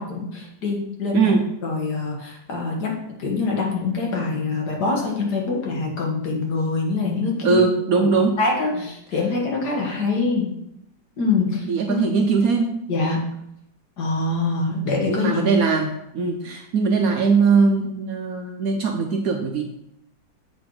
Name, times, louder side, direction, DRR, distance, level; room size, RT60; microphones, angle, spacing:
voice 1, 0.0-1.3 1.6-7.6 8.4-10.5 11.2-12.0 12.9-13.3 14.0-15.4, left 3 dB, 65° left, -1 dB, 1.9 m, -24 dB
voice 2, 1.1-1.5 7.4-8.4 11.7-12.8 15.1-19.6, right 4 dB, 70° right, 3 dB, 0.9 m, -20 dB
7.6 x 4.0 x 4.8 m, 0.80 s
omnidirectional pair, 2.0 m